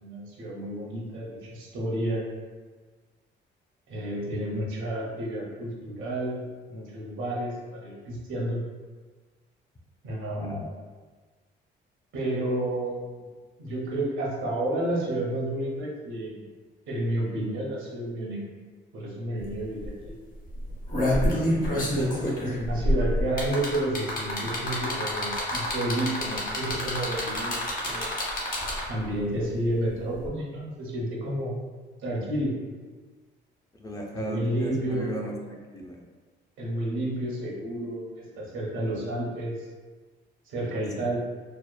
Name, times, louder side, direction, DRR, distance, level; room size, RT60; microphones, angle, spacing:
voice 1, 0.0-2.3 3.9-6.4 6.7-8.6 10.0-10.6 12.1-13.3 13.6-16.4 16.9-18.5 18.9-20.2 21.7-22.0 22.4-28.1 28.9-31.6 32.0-32.5 34.1-35.1 36.6-39.6 40.4-41.2, right 1 dB, 75° right, -3 dB, 0.7 m, -31 dB
voice 2, 10.4-10.7 21.3-21.7 22.2-22.3 33.8-36.0, right 1 dB, 20° left, -1 dB, 0.3 m, -36 dB
sound 1, 19.4-19.5 19.8-20.1 20.6-29.0 30.2-30.3, left 1 dB, 45° left, 0.9 m, -27 dB
2.8 x 2.0 x 2.3 m, 1.4 s
cardioid pair, 90°, 20 cm